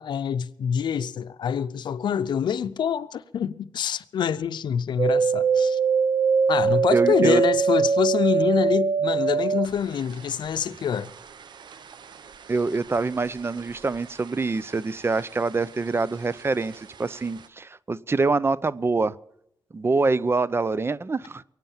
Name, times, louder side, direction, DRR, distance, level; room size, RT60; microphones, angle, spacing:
voice 1, 0.0-5.8 6.5-11.1, left 8 dB, 85° left, 0.6 m, -26 dB
sound 1, 5.0-14.4 14.6-15.5 15.9-16.8 17.2-17.3, right 5 dB, 75° right, 0.9 m, -24 dB
voice 2, 6.9-7.4 12.5-19.1 19.7-21.4, right 3 dB, 30° right, 0.6 m, -25 dB
22.0 x 9.1 x 7.2 m
cardioid pair, 80°, 8 cm